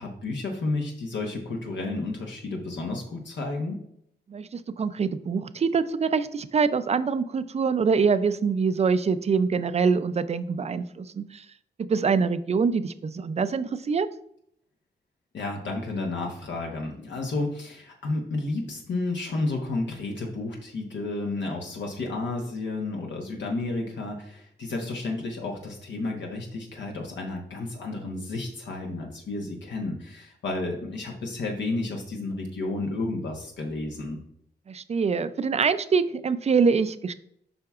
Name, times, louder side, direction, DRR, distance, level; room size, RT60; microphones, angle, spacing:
voice 1, 0.0-3.8 15.3-34.2, left 2 dB, 80° left, 1 dB, 1.0 m, -31 dB
voice 2, 4.3-11.4 11.8-14.1 34.7-37.1, right 5 dB, 35° right, 13 dB, 0.4 m, -24 dB
7.6 x 5.7 x 2.4 m, 0.71 s
wide cardioid pair, 130°, 18 cm